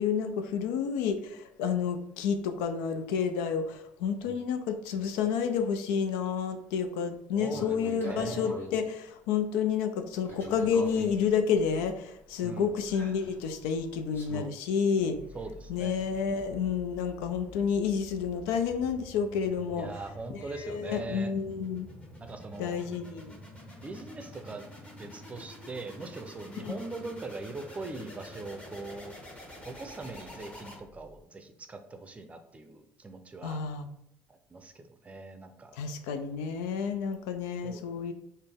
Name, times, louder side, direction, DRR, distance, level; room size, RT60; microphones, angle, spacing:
voice 1, 0.0-15.2 15.7-19.9 20.3-21.9 22.6-23.3 26.6-26.8 33.4-33.9 35.7-38.1, left 6 dB, 85° left, 7 dB, 0.4 m, -30 dB
voice 2, 7.3-7.8 8.0-8.5 12.4-12.8 15.3-16.0 19.7-21.3 22.2-22.9 23.8-24.6 25.0-29.2 29.6-33.6 34.3-35.8 37.6-37.8, right 3 dB, 25° right, 7 dB, 0.5 m, -41 dB
sound 1, 7.5-8.8 10.2-14.4, left 2 dB, 45° left, 1.2 m, -43 dB
sound 2, 15.1-31.2, left 1 dB, 20° left, 1.1 m, -48 dB
4.0 x 2.1 x 3.4 m, 0.77 s
supercardioid pair, 80°, 5 cm